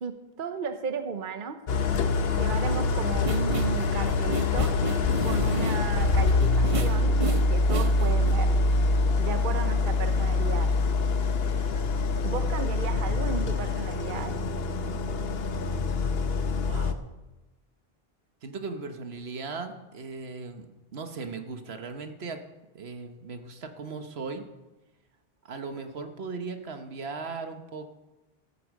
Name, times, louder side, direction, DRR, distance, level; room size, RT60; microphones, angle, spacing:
voice 1, 0.0-1.6 2.4-4.8 5.2-7.1 7.5-8.6 9.2-10.7 12.2-14.3, right 6 dB, 55° right, 8 dB, 1.0 m, -34 dB
Idling, 1.7-16.9, left 3 dB, 70° left, 1.1 m, -25 dB
sound 1, 3.1-8.3, right 3 dB, 35° right, 0.7 m, -35 dB
voice 2, 16.6-17.0 18.4-22.4 22.7-24.5 25.4-27.9, right 4 dB, 75° right, 7 dB, 1.4 m, -38 dB
14.5 x 8.5 x 6.4 m, 1.1 s
omnidirectional pair, 1.1 m